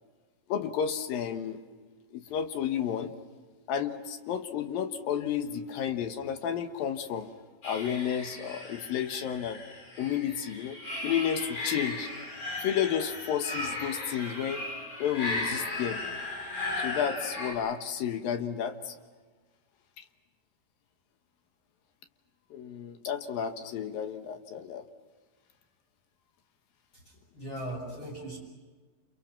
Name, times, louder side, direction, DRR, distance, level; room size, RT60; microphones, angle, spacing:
voice 1, 0.5-1.6 2.1-3.1 3.7-7.3 7.6-9.6 10.0-10.8 11.0-12.1 12.6-14.6 15.0-16.0 16.8-18.9 22.5-24.8, left 8 dB, 70° left, 7 dB, 2.9 m, -31 dB
sound 1, 7.6-17.5, left 2 dB, 50° left, 7.4 m, -36 dB
voice 2, 26.9-28.4, right 1 dB, 30° left, -2 dB, 7.1 m, -39 dB
29.5 x 28.5 x 5.9 m, 1.4 s
omnidirectional pair, 4.4 m